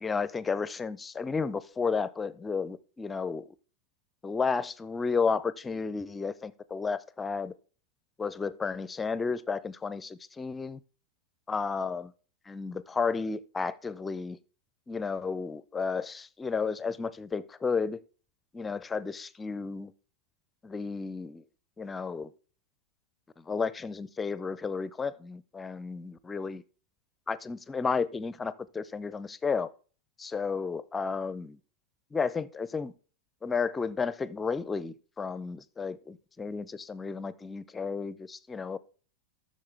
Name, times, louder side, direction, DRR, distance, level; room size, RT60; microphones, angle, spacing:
voice 1, 0.0-3.5 4.2-7.5 8.2-10.8 11.5-12.1 12.5-14.4 14.9-18.0 18.5-19.9 20.6-21.4 21.8-22.3 23.4-26.6 27.3-29.7 30.2-31.6 32.1-32.9 33.4-38.8, left 5 dB, 15° left, 18 dB, 0.5 m, -32 dB
13.5 x 6.6 x 3.3 m, 0.40 s
figure-of-eight pair, 90°, 0 cm